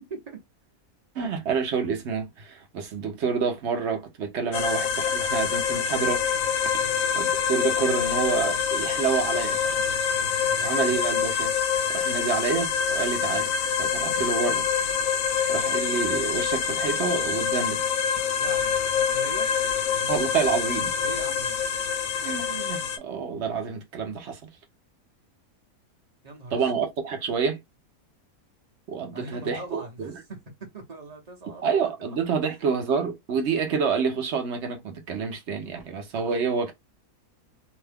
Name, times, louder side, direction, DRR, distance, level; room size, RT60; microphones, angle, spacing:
voice 1, 1.2-6.2 7.1-9.8 10.6-11.5 11.9-13.5 13.8-14.7 15.5-17.8 20.1-20.9 22.2-24.4 26.5-27.6 28.9-29.8 31.6-36.7, right 6 dB, 60° right, 0.9 m, -28 dB
sound 1, 4.5-23.0, left 7 dB, 75° left, 1.0 m, -26 dB
voice 2, 10.1-11.0 18.4-19.5 21.0-21.6 26.2-26.8 29.1-30.4 30.7-31.7 32.1-32.6, right 2 dB, 35° right, 0.8 m, -41 dB
2.8 x 2.2 x 3.4 m
omnidirectional pair, 1.6 m